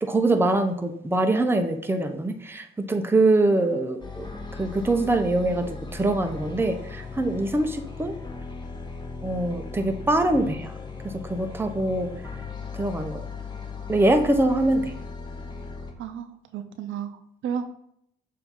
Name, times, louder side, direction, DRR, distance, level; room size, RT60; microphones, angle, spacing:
voice 1, 0.0-8.2 9.2-10.7 11.0-12.1 12.7-13.2 13.9-14.9, right 2 dB, 10° right, 6 dB, 0.7 m, -24 dB
sound 1, 4.0-15.9, left 4 dB, 20° left, 1.2 m, -37 dB
voice 2, 16.0-17.6, right 8 dB, 75° right, 8 dB, 0.7 m, -33 dB
7.0 x 2.8 x 5.3 m, 0.69 s
cardioid pair, 90°, 20 cm